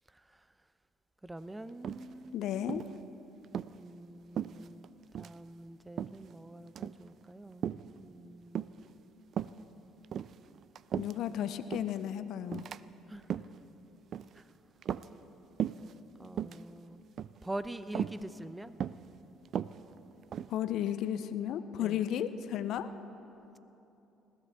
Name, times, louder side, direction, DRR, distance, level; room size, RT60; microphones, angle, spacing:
voice 1, 0.1-0.5 1.2-2.8 3.7-8.8 13.1-13.4 14.3-14.5 16.2-17.0 17.4-18.8 21.8-22.0, right 1 dB, 15° right, 13 dB, 0.7 m, -45 dB
sound 1, 1.8-2.3 2.7-3.0 3.4-3.7 4.4-4.9 5.1-5.4 6.0-6.3 6.7-7.0 7.6-7.9 8.6-8.9 9.3-9.6 10.0-11.3 11.7-12.0 12.5-12.8 13.2-13.6 14.1-14.4 14.8-15.3 15.6-15.9 16.3-16.6 17.2-17.5 18.0-18.2 18.8-19.1 19.5-20.6, right 9 dB, 55° right, 0.3 m, -36 dB
voice 2, 2.3-2.8 11.0-12.6 20.5-22.9, left 10 dB, 65° left, 12 dB, 0.5 m, -34 dB
20.5 x 14.5 x 3.5 m, 2.9 s
hypercardioid pair, 60°, 0 cm